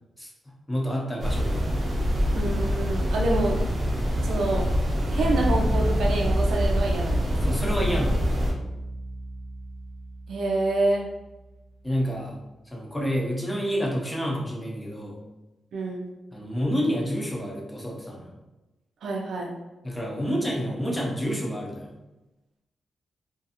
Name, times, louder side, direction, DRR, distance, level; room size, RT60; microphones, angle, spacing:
voice 1, 0.7-1.6 7.4-8.2 11.8-12.4 12.7-15.2 16.3-18.3 19.8-22.0, equal, 5° left, -2 dB, 0.5 m, -28 dB
sound 1, 1.2-8.5, equal, 40° right, 0.6 m, -25 dB
voice 2, 2.3-3.6 4.2-4.7 5.1-7.3 10.3-11.1 15.7-16.0 19.0-19.5, right 2 dB, 90° right, -1 dB, 0.4 m, -27 dB
Bass guitar, 5.2-11.6, right 1 dB, 50° left, 0.7 m, -32 dB
2.5 x 2.4 x 2.7 m, 1.0 s
wide cardioid pair, 170°, 0 cm